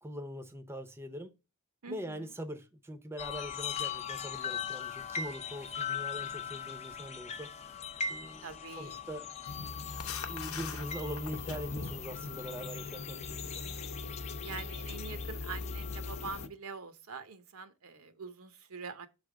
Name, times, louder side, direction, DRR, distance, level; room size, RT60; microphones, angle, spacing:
voice 1, 0.0-1.3 1.9-7.5 8.1-9.2 10.3-13.6, equal, 10° right, 0.6 m, -42 dB
voice 2, 1.8-2.3 8.4-9.0 13.3-13.8 14.4-19.1, right 4 dB, 75° right, 0.8 m, -45 dB
sound 1, 3.2-16.5, left 7 dB, 30° left, 0.5 m, -41 dB
sound 2, 9.5-16.5, left 4 dB, 70° left, 0.8 m, -40 dB
6.0 x 3.4 x 4.8 m
head